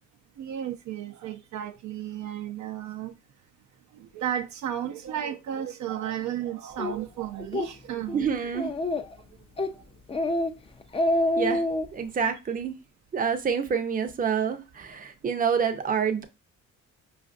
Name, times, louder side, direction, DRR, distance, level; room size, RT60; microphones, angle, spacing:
voice 1, 0.4-3.1 3.9-8.5 9.7-9.8, right 10 dB, 70° right, 0.5 m, -34 dB
Speech, 6.8-6.9 7.4-7.7 8.1-8.2 8.5-9.2 9.6-9.8 10.1-10.5 10.8-11.9, left 1 dB, 20° left, 0.4 m, -26 dB
voice 2, 8.1-8.7 11.4-11.6 11.9-12.7 13.1-16.2, right 6 dB, 30° right, 0.6 m, -27 dB
4.9 x 2.5 x 2.4 m
cardioid pair, 90°, 30 cm